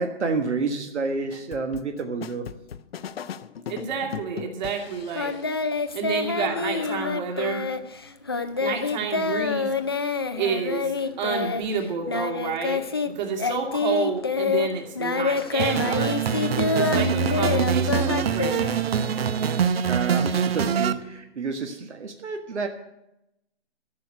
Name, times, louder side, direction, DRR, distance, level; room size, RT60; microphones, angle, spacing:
voice 1, 0.0-2.5 19.9-22.7, right 4 dB, 80° right, 5 dB, 1.5 m, -29 dB
sound 1, 1.3-5.6, left 8 dB, 60° left, 0.7 m, -38 dB
voice 2, 3.7-5.3 5.9-7.6 8.6-9.7 10.4-16.1 16.7-18.7, right 6 dB, 40° right, 2 dB, 2.6 m, -29 dB
Singing, 5.1-13.1 13.4-19.2, left 4 dB, 25° left, 0.3 m, -27 dB
sound 2, 15.6-20.9, right 7 dB, 60° right, 0.9 m, -24 dB
13.5 x 6.3 x 9.0 m, 0.86 s
hypercardioid pair, 145°, 34 cm